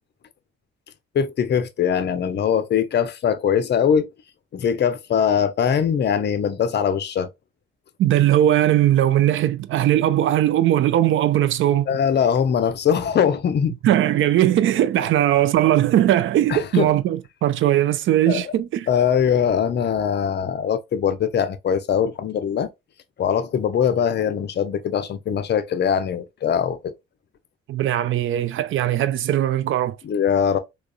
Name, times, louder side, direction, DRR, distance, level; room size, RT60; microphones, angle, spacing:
voice 1, 1.1-4.1 4.5-7.3 11.9-13.8 16.5-16.9 18.3-18.5 18.9-22.7 23.2-26.9 30.0-30.6, left 8 dB, 35° left, 0.6 m, -21 dB
voice 2, 8.0-11.9 13.8-18.9 27.7-30.0, right 12 dB, 40° right, 0.4 m, -19 dB
3.5 x 2.4 x 2.3 m
figure-of-eight pair, 45°, 30 cm